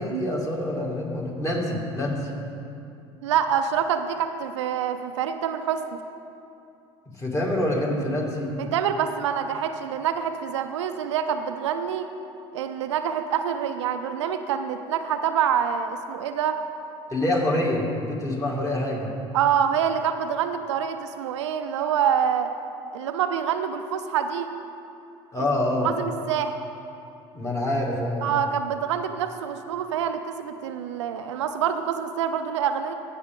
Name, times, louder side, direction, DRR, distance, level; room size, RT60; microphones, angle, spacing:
voice 1, 0.0-2.3 7.1-8.5 17.1-19.1 25.3-25.9 27.3-28.3, left 1 dB, 20° left, -2 dB, 2.3 m, -26 dB
voice 2, 3.2-6.0 8.6-12.1 12.5-16.6 19.3-22.5 22.9-24.5 25.8-26.5 28.2-32.9, right 8 dB, 85° right, 8 dB, 0.5 m, -26 dB
15.5 x 6.0 x 3.7 m, 2.6 s
hypercardioid pair, 75°, 15 cm